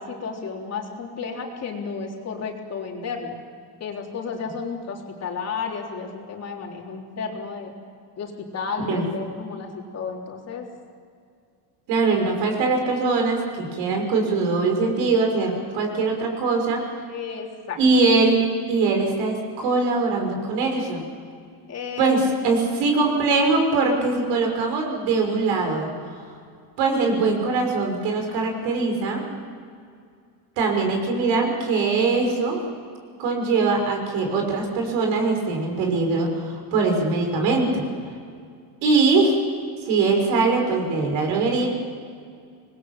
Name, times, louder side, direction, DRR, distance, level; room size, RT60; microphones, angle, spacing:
voice 1, 0.0-3.4 3.8-7.7 8.2-10.7 17.1-17.8 21.7-22.2, left 5 dB, 35° left, 0 dB, 3.7 m, -32 dB
voice 2, 11.9-16.8 17.8-21.0 22.0-26.2 26.8-29.2 30.6-32.6 33.2-37.8 38.8-39.4 39.9-41.7, right 3 dB, 65° right, 2 dB, 5.8 m, -22 dB
26.0 x 20.5 x 7.4 m, 2.3 s
cardioid pair, 145°, 46 cm